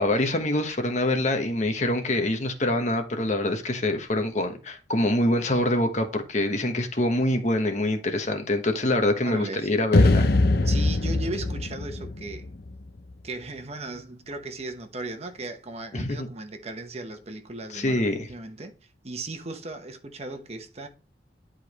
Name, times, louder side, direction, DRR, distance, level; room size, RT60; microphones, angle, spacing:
voice 1, 0.0-10.3 15.9-16.3 17.7-18.3, left 1 dB, 40° left, 1.2 m, -25 dB
voice 2, 9.2-9.7 10.6-12.5 13.2-18.7 19.0-20.9, right 2 dB, 35° right, 1.0 m, -37 dB
sound 1, 9.9-13.1, left 2 dB, 60° left, 0.7 m, -22 dB
10.5 x 5.0 x 3.0 m
head